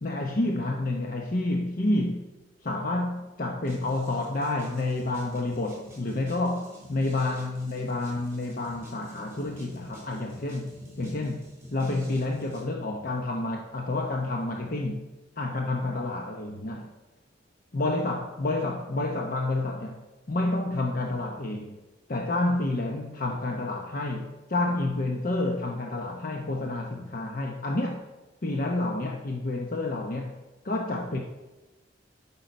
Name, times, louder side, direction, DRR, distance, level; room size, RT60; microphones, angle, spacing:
voice 1, 0.0-2.3 2.6-11.4 11.7-15.0 15.4-16.9 17.7-20.0 20.3-21.8 22.1-28.0 28.4-30.4 30.6-31.2, left 2 dB, 50° left, 2 dB, 0.8 m, -29 dB
sound 1, 3.6-12.6, equal, 15° right, 3.9 m, -49 dB
sound 2, 5.0-11.2, equal, 15° left, 2.3 m, -56 dB
12.0 x 5.7 x 5.3 m, 1.2 s
head